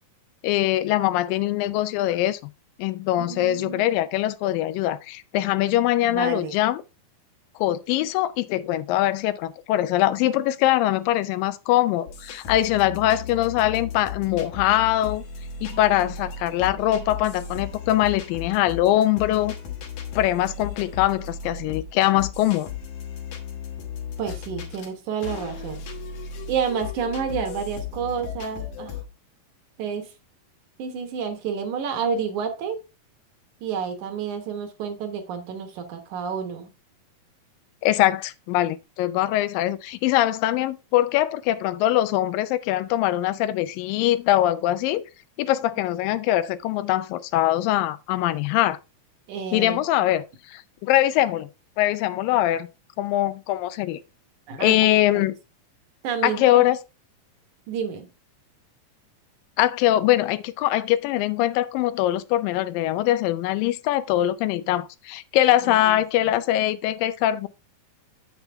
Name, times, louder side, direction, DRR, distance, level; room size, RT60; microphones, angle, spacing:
voice 1, 0.4-2.4 2.8-6.8 7.6-15.2 15.6-19.6 20.2-22.7 37.8-45.0 45.4-48.8 49.5-51.5 51.8-52.7 53.0-54.0 54.6-55.3 56.2-56.8 59.6-67.5, left 14 dB, 85° left, 2.3 m, -22 dB
voice 2, 3.2-3.8 6.0-6.6 24.2-25.8 26.5-29.0 29.8-30.1 30.8-32.8 33.6-36.7 49.3-49.8 54.5-55.3 56.0-56.6 57.7-58.1 65.6-66.0, right 7 dB, 65° right, 2.4 m, -30 dB
sound 1, 12.1-24.9 25.2-29.0, left 6 dB, 65° left, 2.7 m, -36 dB
8.1 x 6.9 x 3.4 m
omnidirectional pair, 4.0 m